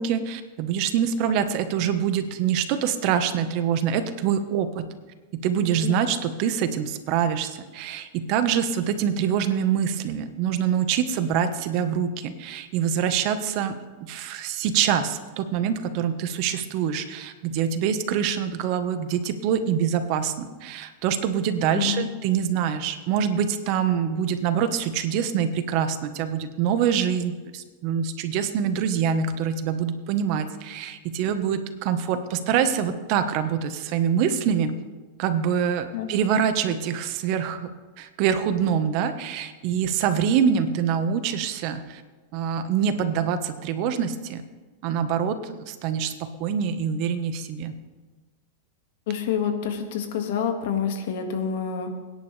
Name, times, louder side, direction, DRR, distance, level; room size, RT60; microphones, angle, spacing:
voice 1, 0.0-4.9 5.3-13.7 14.0-34.8 35.2-37.7 38.0-42.0 42.3-44.4 44.8-47.8, right 8 dB, 50° right, 9 dB, 1.2 m, -25 dB
voice 2, 21.7-22.1 35.9-36.1 49.1-51.9, left 7 dB, 70° left, 5 dB, 1.9 m, -27 dB
22.5 x 10.5 x 3.4 m, 1.3 s
supercardioid pair, 135°, 0 cm